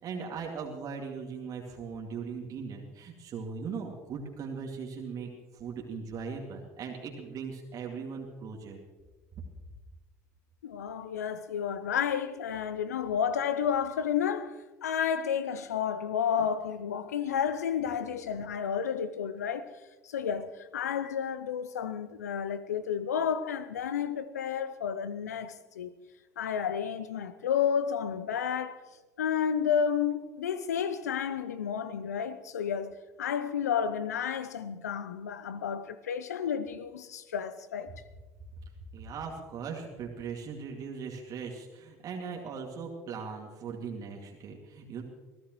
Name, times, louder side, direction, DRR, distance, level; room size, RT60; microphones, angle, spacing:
voice 1, 0.0-8.8 38.9-45.0, right 5 dB, 45° right, 2.4 m, -39 dB
voice 2, 10.6-19.7 20.0-25.9 26.4-28.8 29.2-37.9, left 8 dB, 80° left, 0.6 m, -31 dB
23.5 x 15.5 x 3.1 m
hypercardioid pair, 70°, 9 cm